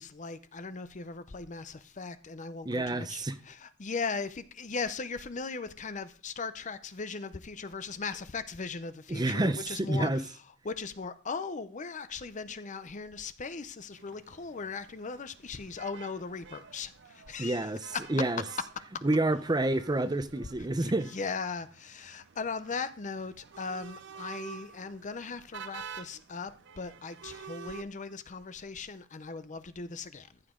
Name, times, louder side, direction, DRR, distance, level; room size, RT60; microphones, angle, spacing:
voice 1, 0.0-10.2 10.6-18.0 18.9-19.0 21.1-30.4, left 4 dB, 40° left, 0.7 m, -38 dB
voice 2, 2.6-3.4 9.1-10.2 17.4-18.4 19.0-21.1, right 2 dB, 20° right, 0.7 m, -29 dB
sound 1, 13.9-27.8, right 6 dB, 60° right, 0.6 m, -49 dB
14.5 x 8.3 x 3.8 m
head